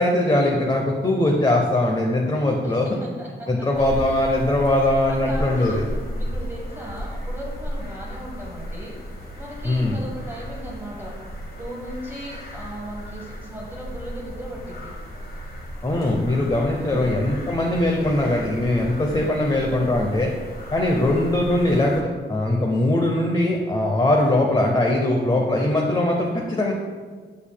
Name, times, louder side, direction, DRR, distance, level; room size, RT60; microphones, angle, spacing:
voice 1, 0.0-2.9 3.5-5.8 9.6-10.0 15.8-20.3 20.7-26.7, left 1 dB, 25° left, 0 dB, 0.7 m, -21 dB
voice 2, 3.0-3.5 5.1-5.8 6.1-9.0 9.3-11.1 11.6-14.9 16.6-17.1 20.9-21.2, right 1 dB, 10° right, -4 dB, 1.1 m, -37 dB
sound 1, 3.7-22.0, equal, 50° left, 1.2 m, -34 dB
7.2 x 6.8 x 2.2 m, 1.5 s
wide cardioid pair, 100°, 20 cm